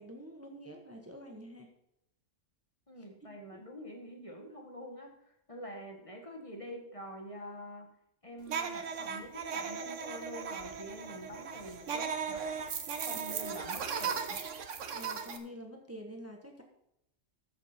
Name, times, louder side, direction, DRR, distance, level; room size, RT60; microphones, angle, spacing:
voice 1, 0.0-1.7 3.0-3.1 3.5-3.6 13.1-13.2 14.9-16.6, equal, 10° right, 2 dB, 1.3 m, -47 dB
voice 2, 2.9-5.1 5.5-7.9 8.2-12.4 13.0-14.4, equal, 25° left, 2 dB, 1.6 m, -46 dB
sound 1, 8.5-15.4, right 6 dB, 75° right, 1.3 m, -37 dB
13.5 x 7.5 x 4.4 m, 0.81 s
omnidirectional pair, 1.3 m